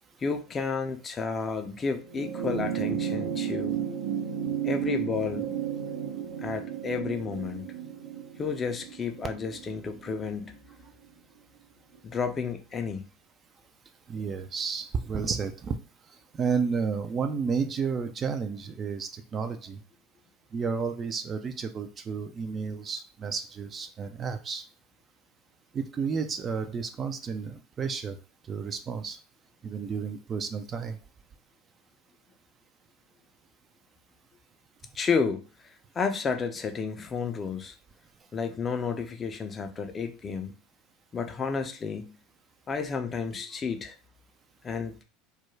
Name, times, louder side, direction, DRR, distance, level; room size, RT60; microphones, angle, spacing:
voice 1, 0.2-3.8 4.6-5.6 6.4-7.7 8.4-10.6 12.0-13.1 34.9-35.4 35.9-37.7 38.3-40.5 41.1-42.2 42.7-44.0 44.6-45.0, left 5 dB, 30° left, 6 dB, 0.4 m, -31 dB
sound 1, 2.0-10.7 12.0-12.1, right 9 dB, 75° right, 0.6 m, -33 dB
voice 2, 14.1-15.8 16.3-19.8 20.5-24.6 25.7-28.2 28.5-29.2 29.6-31.0, right 5 dB, 35° right, 7 dB, 0.3 m, -31 dB
2.3 x 2.1 x 3.0 m, 0.34 s
hypercardioid pair, 80°, 0 cm